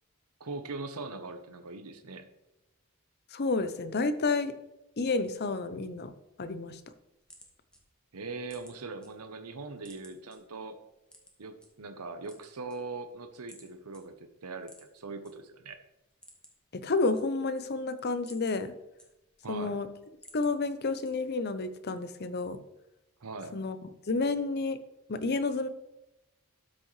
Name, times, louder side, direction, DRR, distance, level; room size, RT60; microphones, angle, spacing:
voice 1, 0.4-2.3 8.1-10.8 11.4-15.8 19.4-19.8 23.2-23.6, right 3 dB, 85° right, 8 dB, 0.9 m, -41 dB
voice 2, 3.3-4.5 5.0-6.1 6.4-6.8 16.7-18.7 19.5-19.9 20.3-22.6 23.5-23.8 24.1-24.8 25.1-25.7, left 3 dB, 45° left, 11 dB, 0.6 m, -30 dB
sound 1, 7.1-9.1 9.4-10.4 11.1-11.7 12.1-13.1 13.5-13.7 13.9-14.0 14.6-15.3 15.7-15.8 16.0-16.7 17.0-17.6 18.0-19.5 19.9-20.5 21.0-21.5, equal, 5° left, 1.3 m, -55 dB
12.5 x 6.3 x 3.2 m, 0.94 s
head